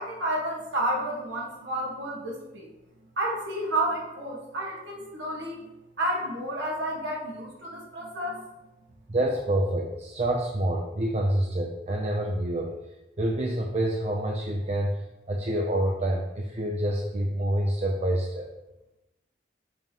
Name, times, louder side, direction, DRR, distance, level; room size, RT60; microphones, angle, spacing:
voice 1, 0.0-2.7 3.2-5.7 6.0-8.4, right 1 dB, 80° right, -2 dB, 1.6 m, -31 dB
voice 2, 9.1-12.7 13.2-15.0 15.3-18.5, right 1 dB, 35° right, 0 dB, 0.5 m, -27 dB
7.5 x 3.0 x 5.2 m, 0.98 s
head